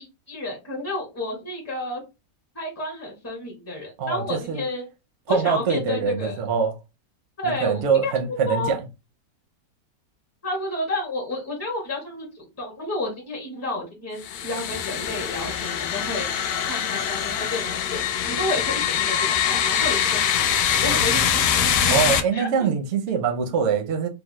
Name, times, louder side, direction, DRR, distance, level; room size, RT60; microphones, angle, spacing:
voice 1, 0.0-2.0 2.5-4.9 5.3-6.5 7.4-8.7 10.4-16.3 16.7-18.0 18.2-19.2 19.4-22.0 22.3-22.7, left 2 dB, 15° left, 0.5 m, -31 dB
voice 2, 4.0-4.6 5.3-6.8 7.6-8.8 21.9-24.1, right 6 dB, 60° right, 0.8 m, -23 dB
sound 1, 14.2-22.2, left 8 dB, 75° left, 1.1 m, -23 dB
3.3 x 2.0 x 3.0 m
omnidirectional pair, 1.8 m